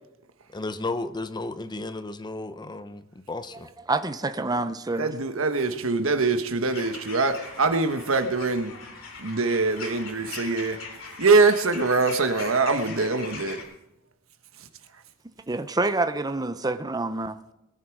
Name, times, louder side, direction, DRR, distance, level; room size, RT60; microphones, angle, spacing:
voice 1, 0.5-3.7, left 2 dB, 20° left, 0.7 m, -33 dB
voice 2, 3.9-5.1 15.5-17.4, right 2 dB, 20° right, 0.6 m, -27 dB
voice 3, 5.0-8.8 9.2-10.8 11.2-13.6, right 3 dB, 90° right, 1.3 m, -23 dB
sound 1, 6.7-13.6, left 4 dB, 75° left, 3.8 m, -41 dB
21.0 x 10.0 x 4.7 m
head